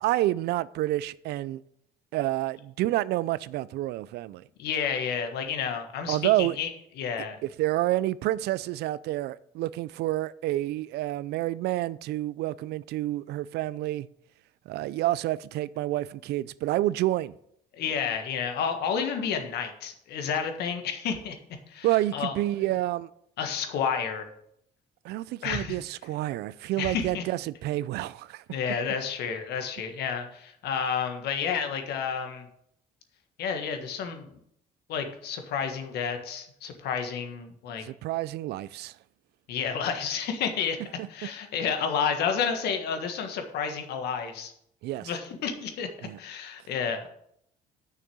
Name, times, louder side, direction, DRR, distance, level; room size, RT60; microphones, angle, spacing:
voice 1, 0.0-1.6 2.1-4.4 6.1-6.6 7.4-14.1 14.7-17.3 21.8-23.1 25.0-28.4 37.8-38.9 44.8-45.1 46.0-46.2, right 15 dB, 75° right, 0.4 m, -29 dB
voice 2, 4.6-6.7 7.0-7.4 17.7-21.3 21.7-21.9 22.1-22.4 23.4-24.3 25.4-25.8 26.8-27.2 28.5-32.5 33.4-34.4 34.9-37.8 39.5-40.8 41.1-44.5 45.0-47.1, left 7 dB, 75° left, 1.5 m, -30 dB
6.6 x 6.1 x 7.0 m
cardioid pair, 110°, 17 cm